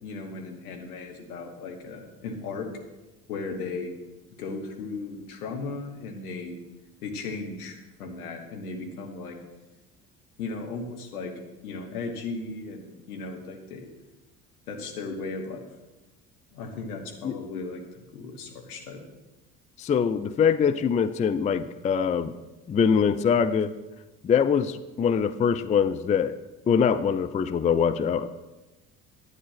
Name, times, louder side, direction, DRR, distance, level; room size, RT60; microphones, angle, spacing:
voice 1, 0.0-2.7 3.3-4.0 4.4-6.6 7.0-9.4 10.4-11.3 11.6-13.9 14.7-15.7 16.5-19.1 20.2-20.3, left 3 dB, 70° left, 2 dB, 1.8 m, -36 dB
voice 2, 19.8-22.3 22.7-23.7 24.2-26.4 26.7-28.3, left 7 dB, 15° left, 13 dB, 0.4 m, -23 dB
11.0 x 9.2 x 5.8 m, 1.1 s
figure-of-eight pair, 55°, 45 cm